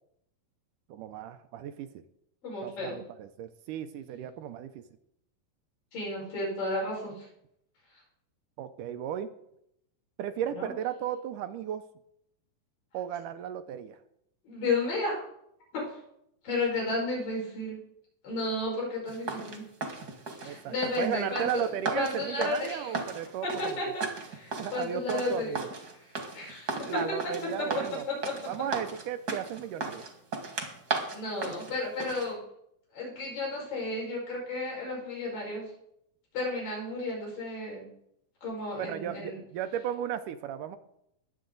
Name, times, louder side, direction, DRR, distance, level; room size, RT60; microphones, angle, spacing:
voice 1, 0.9-1.9 2.6-4.8 8.6-9.3 10.2-11.8 12.9-14.0 20.4-23.7 24.6-25.7 26.7-28.0 28.5-30.1 38.8-40.8, right 9 dB, 75° right, 10 dB, 2.1 m, -35 dB
voice 2, 2.4-3.0 5.9-7.3 10.5-10.7 14.5-15.2 15.7-16.0 16.4-17.8 18.2-19.6 20.4-22.9 23.6-25.6 26.3-27.0 27.6-28.3 31.1-32.4 32.9-35.7 36.3-37.9 38.4-39.4, left 2 dB, 70° left, -4 dB, 6.8 m, -33 dB
sound 1, 19.1-32.3, right 4 dB, 40° right, 1.5 m, -36 dB
21.0 x 8.3 x 3.9 m, 0.76 s
omnidirectional pair, 4.0 m